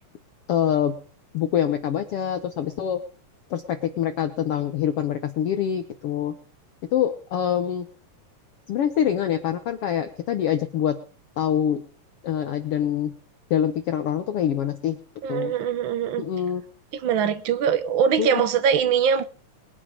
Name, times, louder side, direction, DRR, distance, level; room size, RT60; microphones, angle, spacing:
voice 1, 0.5-0.9 1.3-3.0 3.5-6.3 6.9-7.9 8.7-11.0 11.4-11.8 12.2-13.1 13.5-15.0 15.3-15.5 16.2-16.6 18.2-18.4, left 9 dB, 65° left, 1.5 m, -25 dB
voice 2, 15.2-16.2 16.9-19.2, right 7 dB, 80° right, 1.1 m, -22 dB
21.5 x 8.8 x 5.1 m
omnidirectional pair, 3.6 m